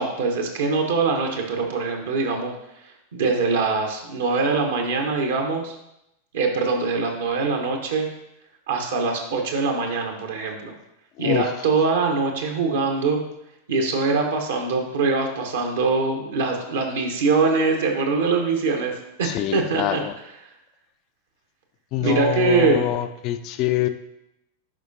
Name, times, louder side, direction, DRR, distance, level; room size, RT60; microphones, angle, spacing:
voice 1, 0.0-2.5 3.1-5.7 6.3-8.1 8.7-10.7 11.2-13.2 13.7-20.0 22.0-22.9, right 4 dB, 60° right, 2 dB, 1.0 m, -23 dB
voice 2, 19.2-20.1 21.9-23.9, left 13 dB, 40° left, 9 dB, 0.4 m, -25 dB
11.0 x 5.0 x 2.7 m, 0.84 s
figure-of-eight pair, 90°, 0 cm